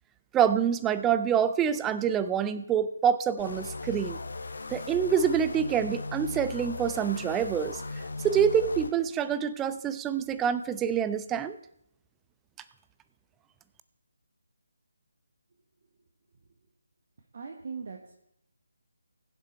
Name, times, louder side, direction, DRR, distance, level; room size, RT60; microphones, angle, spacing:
voice 1, 0.3-4.2 4.7-7.8 8.2-11.6, right 8 dB, 10° right, 13 dB, 0.4 m, -26 dB
sound 1, 3.4-8.9, left 3 dB, 55° left, 1.0 m, -38 dB
voice 2, 17.3-18.1, right 5 dB, 40° right, 3 dB, 1.3 m, -39 dB
21.5 x 7.2 x 4.4 m, 0.77 s
figure-of-eight pair, 150°, 0 cm